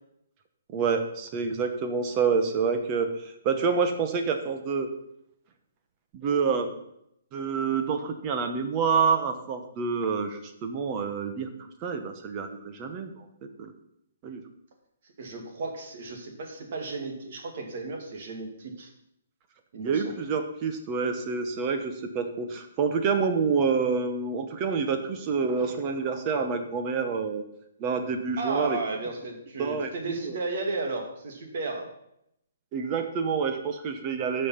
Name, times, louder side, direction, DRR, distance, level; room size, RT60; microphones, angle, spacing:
voice 1, 0.7-4.9 6.1-6.7 7.3-11.5 11.8-13.3 13.6-13.7 14.2-14.4 19.8-27.4 27.8-28.8 29.6-30.4 32.7-34.5, right 5 dB, 20° right, 6 dB, 1.1 m, -27 dB
voice 2, 15.2-18.9 19.7-20.1 28.4-31.9, right 3 dB, 45° right, 2 dB, 2.3 m, -34 dB
13.5 x 5.6 x 5.8 m, 0.77 s
hypercardioid pair, 175°, 0 cm